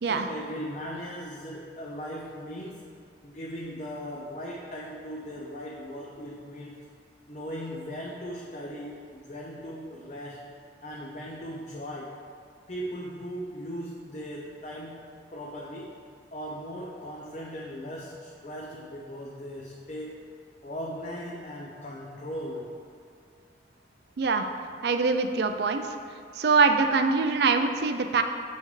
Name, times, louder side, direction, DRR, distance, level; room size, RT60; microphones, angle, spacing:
voice 1, 0.0-2.9 3.2-6.8 7.3-10.5 10.8-12.2 12.7-15.9 16.3-20.2 20.6-22.7, equal, 40° left, -3 dB, 0.5 m, -38 dB
voice 2, 24.8-25.9 26.4-28.2, right 4 dB, 60° right, 6 dB, 0.4 m, -23 dB
7.8 x 5.5 x 3.2 m, 2.2 s
head